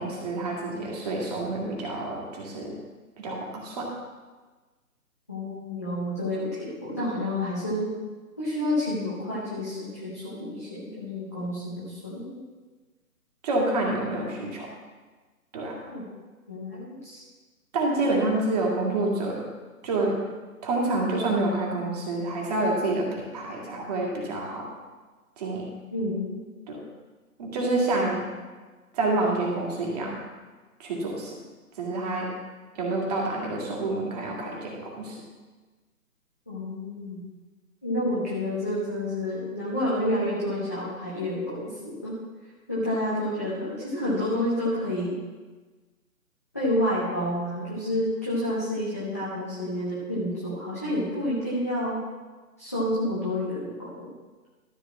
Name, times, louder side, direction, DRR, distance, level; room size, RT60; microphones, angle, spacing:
voice 1, 0.0-2.7 3.2-3.9 13.4-14.7 15.5-15.8 17.7-19.4 19.8-20.2 20.6-24.7 25.4-25.7 26.7-26.8 27.4-28.2 28.9-30.2 30.8-31.4 31.8-32.3 32.8-35.1, right 2 dB, 25° right, -2 dB, 2.1 m, -28 dB
voice 2, 5.3-7.9 8.4-12.4 15.9-16.1 16.5-17.2 25.9-26.5 36.5-37.2 37.8-42.2 42.7-45.2 46.5-52.0 52.6-54.1, left 1 dB, 10° left, -10 dB, 0.6 m, -29 dB
13.0 x 4.5 x 7.2 m, 1.3 s
figure-of-eight pair, 145°, 45 cm